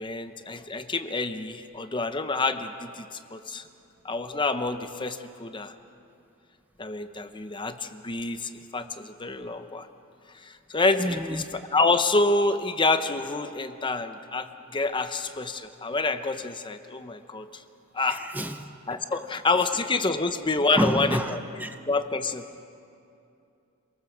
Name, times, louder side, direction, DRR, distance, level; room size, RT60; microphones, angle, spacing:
voice 1, 0.0-3.6 4.0-5.7 6.8-9.9 10.3-11.4 11.7-17.6 17.9-18.2 18.9-21.4 21.9-22.4, left 3 dB, 25° left, 9 dB, 0.8 m, -27 dB
voice 2, 11.0-11.4 18.1-18.7 19.1-19.2 20.8-21.8, equal, 10° right, 7 dB, 0.7 m, -29 dB
27.0 x 19.0 x 7.3 m, 2.6 s
head